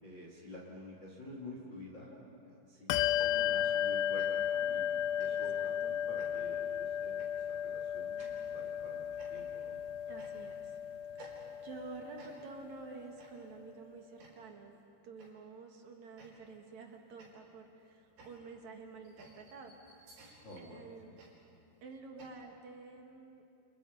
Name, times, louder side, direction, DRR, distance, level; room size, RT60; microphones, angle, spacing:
voice 1, 0.0-2.2 2.4-9.8 20.3-20.9, left 1 dB, 30° left, -3 dB, 2.9 m, -50 dB
Bell, 2.9-12.9, left 10 dB, 85° left, 3.1 m, -35 dB
sound 1, 3.2-3.9 4.2-4.6 5.2-5.6 6.2-6.6 7.2-7.5 8.2-8.6 9.2-9.7 10.2-10.7 11.2-11.8 12.2-12.7 13.2-13.6 14.2-14.6 15.2-15.5 16.2-16.7 17.2-22.3, right 2 dB, 70° right, 6.9 m, -58 dB
voice 2, 5.2-6.0 10.1-10.8 11.3-14.8 15.0-19.8 20.0-20.2 20.6-21.2 21.8-23.4, right 4 dB, 55° right, 3 dB, 2.3 m, -50 dB
30.0 x 29.5 x 5.5 m, 2.5 s
omnidirectional pair, 5.4 m